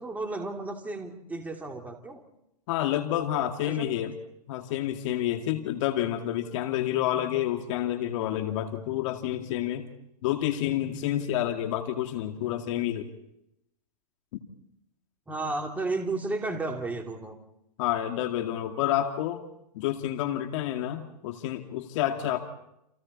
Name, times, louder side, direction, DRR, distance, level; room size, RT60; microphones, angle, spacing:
voice 1, 0.0-2.2 3.6-3.9 15.3-17.4 22.2-22.4, right 2 dB, 5° right, 2 dB, 3.0 m, -33 dB
voice 2, 2.7-4.1 4.5-9.9 10.2-13.1 17.8-19.4 19.7-22.4, left 12 dB, 50° left, 5 dB, 2.3 m, -29 dB
29.5 x 27.5 x 4.3 m, 0.82 s
hypercardioid pair, 130°, 21 cm